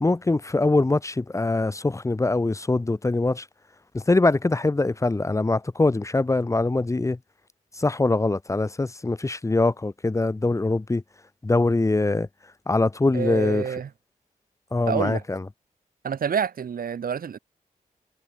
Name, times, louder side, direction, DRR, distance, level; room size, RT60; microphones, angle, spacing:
voice 1, 0.0-3.4 3.9-7.2 7.8-11.0 11.4-12.3 12.7-13.6 14.7-15.4, left 2 dB, 20° left, 0.7 m, -23 dB
voice 2, 13.1-13.9 14.9-15.2 16.0-17.4, right 7 dB, 80° right, 2.2 m, -27 dB
cardioid pair, 60°, 15 cm